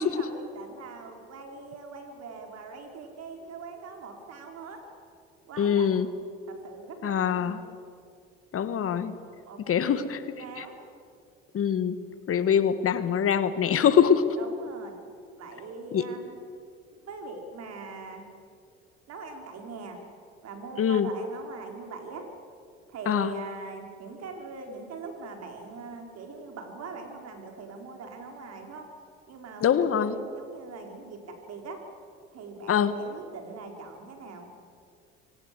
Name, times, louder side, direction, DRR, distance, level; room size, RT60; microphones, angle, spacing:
voice 1, 0.0-4.8 5.4-6.0 6.5-7.7 9.5-10.8 14.4-15.0 15.4-16.4 16.9-18.3 19.1-20.0 20.4-22.3 22.9-28.9 29.3-31.8 32.3-34.5, right 3 dB, 55° right, 4 dB, 4.6 m, -42 dB
voice 2, 5.6-6.1 7.0-7.6 8.5-9.1 9.7-10.2 10.6-10.7 11.5-12.0 12.3-14.4 15.9-16.0 20.8-21.1 23.1-23.3 29.6-30.2 32.7-32.9, left 8 dB, 45° left, 13 dB, 1.5 m, -23 dB
25.0 x 18.5 x 7.7 m, 2.3 s
hypercardioid pair, 60°, 30 cm